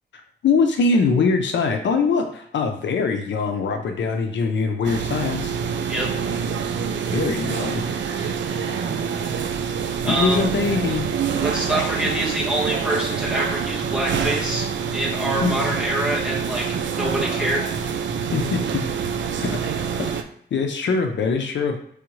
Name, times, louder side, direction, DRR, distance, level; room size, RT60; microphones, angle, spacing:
voice 1, 0.4-5.6 7.1-7.8 10.1-11.1 11.8-12.0 15.4-15.6 18.3-18.9 19.4-19.6 20.0-20.1 20.5-21.8, left 4 dB, 85° left, 5 dB, 0.6 m, -22 dB
sound 1, 4.8-20.2, right 6 dB, 85° right, 0.5 m, -26 dB
voice 2, 10.0-10.4 11.4-14.7 14.9-16.7 16.9-17.6, right 1 dB, 5° right, -6 dB, 1.3 m, -25 dB
4.9 x 3.3 x 3.1 m, 0.64 s
wide cardioid pair, 180°, 18 cm